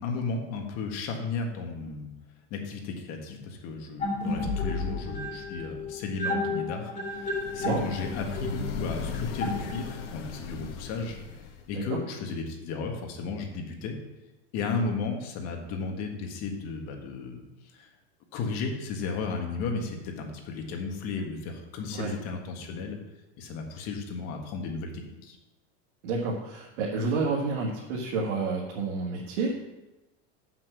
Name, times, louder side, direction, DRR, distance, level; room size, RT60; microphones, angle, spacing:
voice 1, 0.0-2.1 2.5-11.2 11.7-14.0 14.5-17.4 17.8-17.9 18.3-23.0 23.4-25.4, left 4 dB, 50° left, 2 dB, 1.7 m, -34 dB
sound 1, 4.0-10.2, left 2 dB, 20° left, 2.4 m, -32 dB
sound 2, 7.1-11.8, left 6 dB, 85° left, 1.3 m, -38 dB
voice 2, 26.0-29.6, right 3 dB, 85° right, -3 dB, 1.7 m, -30 dB
7.5 x 6.0 x 6.1 m, 1.0 s
supercardioid pair, 145°, 35 cm